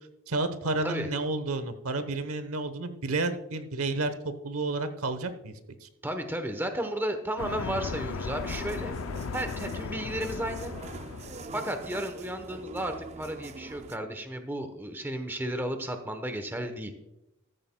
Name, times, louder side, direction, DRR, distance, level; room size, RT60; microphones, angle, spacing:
voice 1, 0.3-5.5 5.8-5.9, right 2 dB, 75° right, 10 dB, 1.0 m, -31 dB
voice 2, 6.0-9.0 9.3-10.7 11.5-16.9, right 1 dB, 10° right, 7 dB, 0.9 m, -33 dB
sound 1, 7.4-11.6, left 5 dB, 65° left, 0.4 m, -36 dB
sound 2, 8.4-14.0, right 4 dB, 30° right, 0.4 m, -44 dB
14.5 x 13.5 x 2.2 m, 0.91 s
head